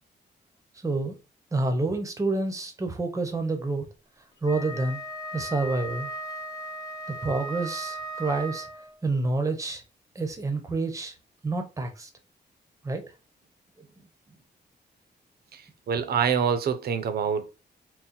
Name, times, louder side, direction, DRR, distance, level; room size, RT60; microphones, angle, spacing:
voice 1, 0.8-1.2 1.5-3.9 4.4-5.0 5.3-6.1 7.1-8.7 9.0-9.8 10.1-11.1 11.4-12.1 12.8-13.0 13.8-13.9, right 3 dB, 20° right, 0.7 m, -28 dB
Wind instrument woodwind instrument, 4.4-9.0, right 1 dB, 20° left, 0.5 m, -37 dB
voice 2, 15.9-17.5, right 7 dB, 65° right, 0.6 m, -25 dB
3.8 x 2.2 x 4.2 m
wide cardioid pair, 180°, 18 cm